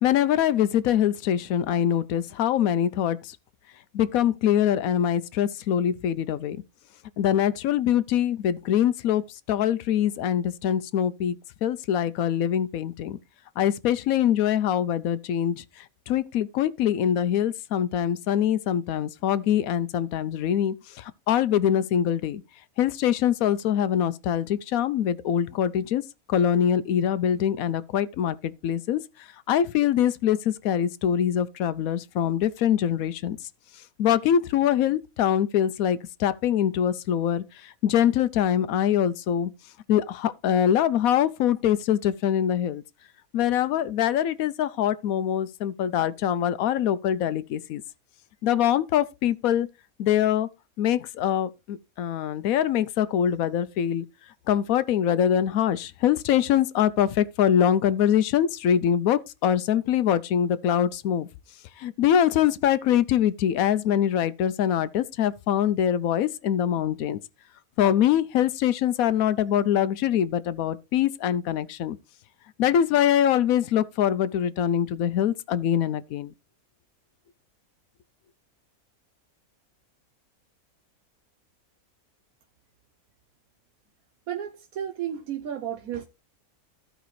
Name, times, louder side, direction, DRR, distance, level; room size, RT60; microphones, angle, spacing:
voice 1, 0.0-3.3 3.9-6.6 7.2-9.2 9.5-11.3 11.6-13.2 13.6-15.6 16.1-22.4 22.8-26.0 26.3-29.0 29.5-33.4 34.0-39.5 39.9-42.8 43.3-47.8 48.4-49.7 50.0-50.5 50.8-54.0 54.5-61.3 61.8-67.2 67.8-72.0 72.6-76.3, left 10 dB, 75° left, 1.0 m, -23 dB
voice 2, 84.3-86.1, right 10 dB, 85° right, 1.3 m, -33 dB
15.0 x 5.1 x 3.1 m
omnidirectional pair, 1.5 m